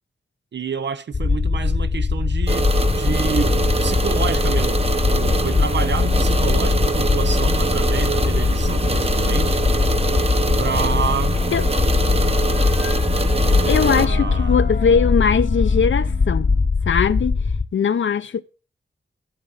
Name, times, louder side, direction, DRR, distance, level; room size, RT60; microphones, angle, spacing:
voice 1, 0.5-9.6 10.6-11.4 12.7-12.8 13.8-14.7, right 6 dB, 65° right, 0.6 m, -28 dB
sound 1, 1.1-17.7, left 4 dB, 30° left, 0.6 m, -21 dB
sound 2, 2.5-14.1, right 3 dB, 30° right, 0.9 m, -24 dB
sound 3, 3.1-16.7, left 5 dB, 55° left, 0.8 m, -39 dB
voice 2, 13.6-16.6 16.9-17.4 17.7-18.4, left 6 dB, 80° left, 0.6 m, -20 dB
14.0 x 7.4 x 3.9 m
wide cardioid pair, 90°, 20 cm